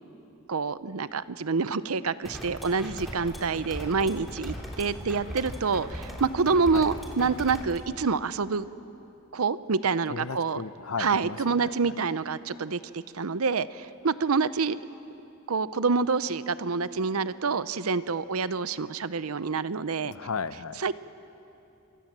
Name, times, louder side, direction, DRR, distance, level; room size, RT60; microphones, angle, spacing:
voice 1, 0.5-8.7 9.3-10.6 11.0-14.8 15.5-20.1 20.8-20.9, right 4 dB, 90° right, 15 dB, 0.7 m, -27 dB
sound 1, 2.2-7.8, equal, ahead, 3.5 m, -39 dB
voice 2, 10.1-11.9 20.0-20.8, left 5 dB, 80° left, 14 dB, 0.7 m, -35 dB
25.5 x 24.5 x 7.5 m, 2.9 s
head